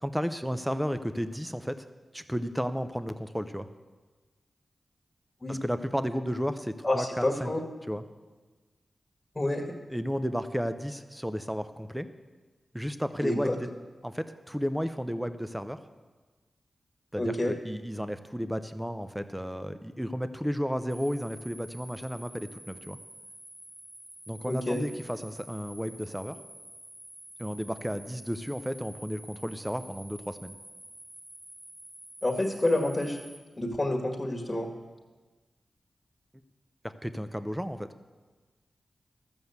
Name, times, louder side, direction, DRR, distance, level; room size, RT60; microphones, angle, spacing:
voice 1, 0.0-1.9 2.1-3.7 5.5-7.5 7.9-8.0 9.9-12.1 12.7-13.7 14.0-15.8 17.1-23.0 24.3-26.4 27.4-30.5 36.8-37.9, equal, 5° right, 11 dB, 0.7 m, -33 dB
voice 2, 6.8-7.6 9.4-9.7 13.2-13.6 17.2-17.5 24.5-24.8 32.2-33.2 33.6-34.7, left 1 dB, 20° left, 1 dB, 1.9 m, -28 dB
sound 1, 20.9-33.4, equal, 35° right, 2.4 m, -49 dB
13.0 x 7.1 x 8.0 m, 1.3 s
cardioid pair, 55°, 0 cm